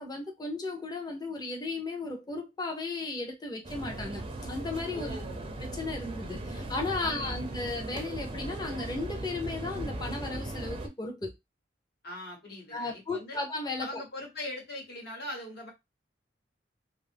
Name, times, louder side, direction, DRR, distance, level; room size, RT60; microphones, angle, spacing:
voice 1, 0.0-5.2 5.6-11.3 12.7-14.0, left 3 dB, 20° left, 0.6 m, -35 dB
sound 1, 3.6-10.9, right 2 dB, 30° right, 0.4 m, -38 dB
voice 2, 4.9-5.5 7.0-7.5 12.0-13.4 13.8-15.7, left 1 dB, 60° left, 1.2 m, -41 dB
2.4 x 2.0 x 3.2 m
head